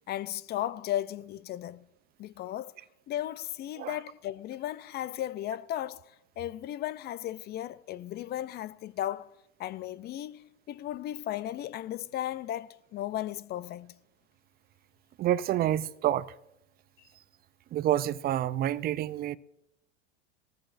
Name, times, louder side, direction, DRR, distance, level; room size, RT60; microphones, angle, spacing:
voice 1, 0.1-1.9 2.2-2.7 3.1-9.3 9.6-13.9, left 12 dB, 30° left, 0.5 m, -35 dB
voice 2, 15.2-16.3 17.7-19.4, right 12 dB, 30° right, 0.5 m, -28 dB
19.5 x 14.0 x 2.6 m
hypercardioid pair, 100°, 34 cm